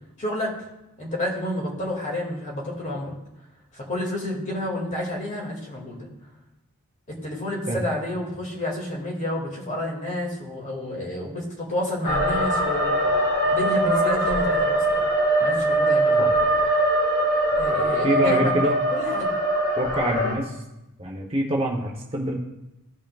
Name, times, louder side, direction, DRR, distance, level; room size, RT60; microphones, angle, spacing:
voice 1, 0.2-0.6 1.0-3.2 3.7-6.1 7.1-12.9 13.5-15.0 15.4-16.2 17.6-18.5 18.9-19.4, left 1 dB, 35° left, -2 dB, 2.1 m, -30 dB
sound 1, 12.0-20.3, right 1 dB, 50° left, 2.1 m, -22 dB
voice 2, 18.0-18.8 19.7-20.6 21.0-22.4, right 1 dB, 25° right, 0 dB, 0.8 m, -25 dB
15.5 x 5.6 x 2.3 m, 0.93 s
head